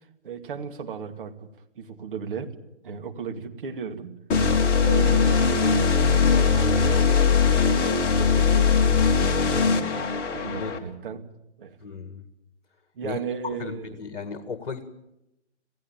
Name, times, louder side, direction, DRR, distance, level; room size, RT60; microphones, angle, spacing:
voice 1, 0.2-1.5 1.8-2.5 2.8-4.2 4.8-11.3 11.6-11.8 13.0-14.0, right 6 dB, 45° right, 5 dB, 2.5 m, -36 dB
sound 1, 4.3-10.8, left 5 dB, 20° left, 2.5 m, -20 dB
voice 2, 11.8-12.3 13.0-13.2 13.6-14.8, left 5 dB, 50° left, 10 dB, 2.0 m, -35 dB
27.0 x 16.0 x 9.0 m, 0.89 s
figure-of-eight pair, 135°, 35 cm